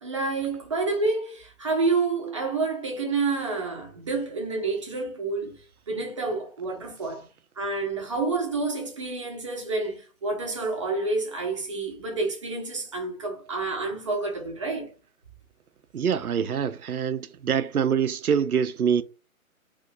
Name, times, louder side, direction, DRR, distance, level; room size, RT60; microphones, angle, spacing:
voice 1, 0.0-5.6 5.9-7.3 7.6-14.9, right 3 dB, 20° right, 0.6 m, -29 dB
voice 2, 15.9-19.0, right 7 dB, 85° right, 0.5 m, -25 dB
2.5 x 2.5 x 4.0 m
figure-of-eight pair, 135°, 43 cm